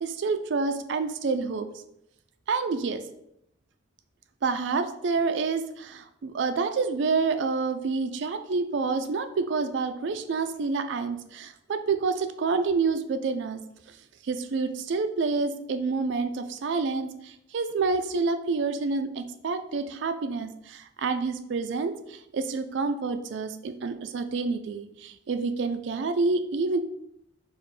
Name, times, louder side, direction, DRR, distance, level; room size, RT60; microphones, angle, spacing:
voice 1, 0.0-1.7 2.5-3.0 4.4-13.6 14.3-26.8, right 4 dB, 60° right, 9 dB, 0.3 m, -28 dB
4.9 x 2.1 x 4.0 m, 0.78 s
head